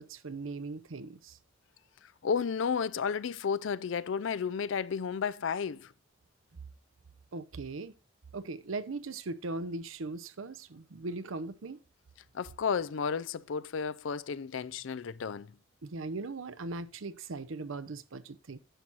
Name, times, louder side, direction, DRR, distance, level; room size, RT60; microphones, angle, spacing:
voice 1, 0.0-1.4 7.3-7.9 8.3-11.8 15.8-18.6, right 3 dB, 85° right, 0.7 m, -39 dB
voice 2, 2.2-5.9 12.3-15.5, left 6 dB, 75° left, 0.4 m, -32 dB
10.0 x 6.2 x 4.0 m
head